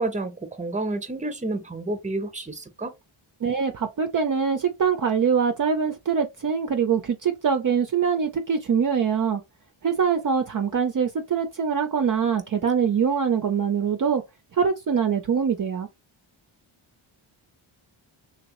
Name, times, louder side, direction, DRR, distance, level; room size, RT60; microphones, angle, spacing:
voice 1, 0.0-2.9, right 2 dB, 15° right, 0.9 m, -30 dB
voice 2, 3.4-9.4 9.8-14.2 14.6-15.9, right 6 dB, 40° right, 0.6 m, -23 dB
3.0 x 2.9 x 3.0 m
cardioid pair, 70°, 50 cm